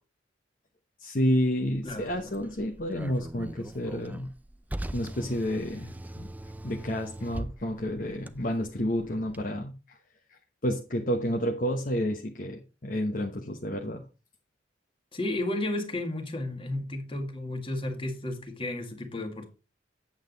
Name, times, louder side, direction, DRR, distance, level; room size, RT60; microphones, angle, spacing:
voice 1, 1.0-4.3 4.9-6.3 6.6-10.0 10.6-14.0, equal, 45° left, 1.0 m, -30 dB
Car, 1.7-9.4, right 1 dB, 10° right, 0.4 m, -41 dB
voice 2, 1.8-2.3 15.1-19.5, left 1 dB, 30° left, 1.9 m, -33 dB
8.8 x 7.7 x 4.0 m
head